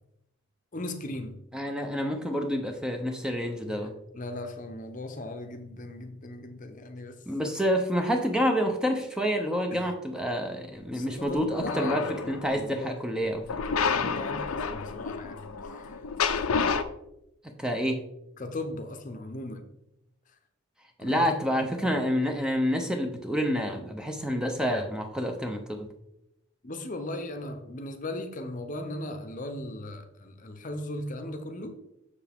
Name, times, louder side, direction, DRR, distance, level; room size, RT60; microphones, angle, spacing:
voice 1, 0.7-1.4 4.1-7.5 9.7-9.9 10.9-12.1 12.4-13.0 13.9-16.0 18.4-19.7 21.0-21.3 21.6-22.0 26.6-31.8, left 1 dB, 35° left, 7 dB, 0.7 m, -38 dB
voice 2, 1.5-3.9 7.3-13.6 17.6-18.0 21.0-25.9, equal, 5° right, 3 dB, 0.6 m, -28 dB
sound 1, 11.2-12.6 13.5-16.8, left 5 dB, 85° left, 0.6 m, -30 dB
7.1 x 6.8 x 3.5 m, 0.84 s
head